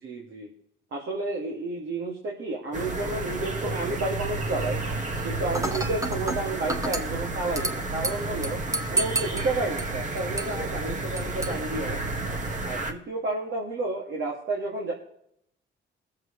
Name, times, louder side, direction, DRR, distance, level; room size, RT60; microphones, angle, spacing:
voice 1, 0.0-0.5 0.9-4.9 5.2-8.6 8.9-12.0 12.6-14.9, right 2 dB, 65° right, -2 dB, 2.5 m, -31 dB
sound 1, 2.7-12.9, right 2 dB, 40° right, 1.8 m, -31 dB
Dishes pots and pans / Glass, 5.5-12.5, right 2 dB, 15° right, 1.1 m, -33 dB
21.0 x 7.4 x 3.3 m, 0.73 s
cardioid pair, 90°, 20 cm